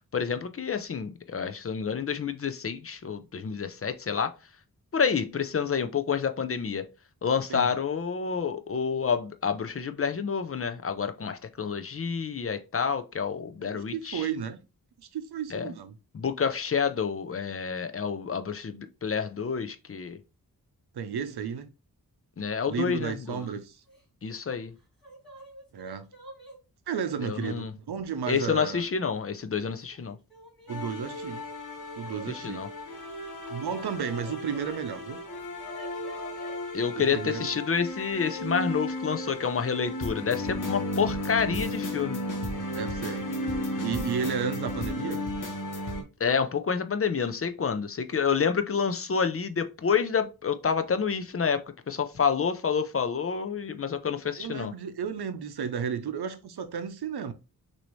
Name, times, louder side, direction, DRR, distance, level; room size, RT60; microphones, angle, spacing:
voice 1, 0.1-4.3 4.9-6.8 7.2-14.3 15.5-15.7 16.1-20.2 22.4-23.5 24.2-24.7 27.2-27.7 28.3-30.2 32.3-32.7 36.7-42.2 46.2-54.7, left 6 dB, 40° left, 0.5 m, -28 dB
voice 2, 13.6-14.6 15.0-15.9 20.9-21.7 22.7-23.8 25.7-26.1 26.9-28.9 30.7-31.4 32.0-32.6 33.5-35.2 37.0-37.5 42.7-43.3 43.8-45.2 54.4-57.3, right 7 dB, 90° right, 0.7 m, -33 dB
Yell / Crying sobbing, 23.2-23.6 23.9-24.0 24.8-26.6 27.5-27.6 28.6-29.2 29.5-30.8 32.0-32.3 33.4-34.8 35.1-36.6 38.2-38.4 39.6-40.0 40.3-40.5 41.6-41.7 42.1-42.4, right 1 dB, ahead, 2.5 m, -50 dB
sound 1, 30.7-46.0, left 1 dB, 55° left, 1.0 m, -34 dB
6.2 x 2.7 x 3.1 m
wide cardioid pair, 120°, 38 cm